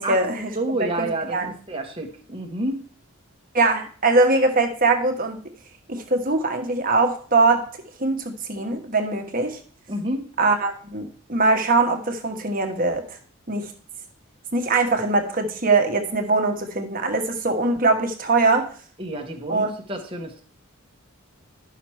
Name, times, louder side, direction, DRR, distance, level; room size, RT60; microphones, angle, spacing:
voice 1, 0.0-0.5 0.8-1.1 1.3-1.5 3.5-5.4 5.9-7.6 8.0-9.6 10.4-13.0 13.5-13.7 14.5-18.7 19.5-19.7, right 3 dB, 40° right, 5 dB, 1.3 m, -22 dB
voice 2, 0.5-1.4 1.7-2.8 9.9-10.3 19.0-20.4, right 1 dB, 25° right, 2 dB, 1.2 m, -29 dB
11.0 x 5.9 x 4.4 m, 0.44 s
head